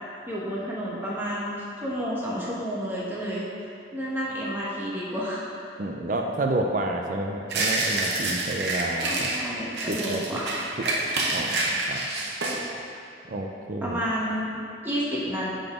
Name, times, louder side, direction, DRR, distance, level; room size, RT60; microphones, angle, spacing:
voice 1, 0.3-3.5 3.9-5.4 9.0-10.5 13.8-15.5, equal, 10° right, -7 dB, 1.1 m, -30 dB
voice 2, 5.8-9.3 9.9-10.2 11.3-12.0 13.3-14.0, right 2 dB, 45° right, 2 dB, 0.4 m, -30 dB
sound 1, 7.5-9.4 9.8-12.6, right 2 dB, 65° right, 0.9 m, -27 dB
6.9 x 3.9 x 5.0 m, 2.5 s
head